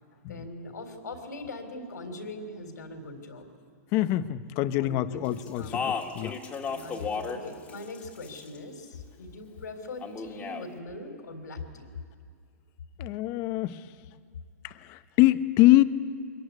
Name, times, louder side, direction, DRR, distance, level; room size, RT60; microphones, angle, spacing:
voice 1, 0.3-3.5 4.8-5.9 6.6-11.9, left 2 dB, 90° left, 7 dB, 3.8 m, -41 dB
voice 2, 3.9-6.4 13.0-13.8 14.6-15.8, left 16 dB, 30° left, 13 dB, 0.9 m, -24 dB
Speech, 5.5-7.4 7.7-8.6 10.0-10.7, left 5 dB, 15° left, 1.8 m, -33 dB
24.0 x 21.5 x 9.5 m, 2.3 s
hypercardioid pair, 150°, 9 cm